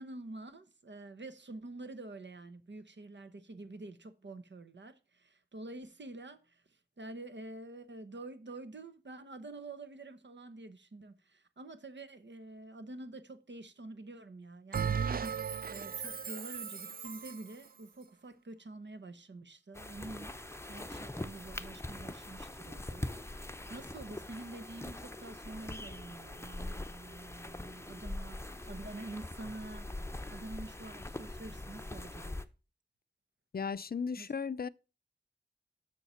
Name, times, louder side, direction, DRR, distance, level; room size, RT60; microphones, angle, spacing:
voice 1, 0.0-15.4 15.7-20.3 20.7-29.9 30.3-32.4 34.2-34.3, right 2 dB, 80° right, 1.0 m, -47 dB
Bell, 14.7-17.5, right 7 dB, 55° right, 0.4 m, -36 dB
sound 1, 19.7-32.5, left 1 dB, 15° left, 0.7 m, -43 dB
voice 2, 33.5-34.7, left 5 dB, 55° left, 0.4 m, -35 dB
7.1 x 6.5 x 5.6 m
wide cardioid pair, 60°, 18 cm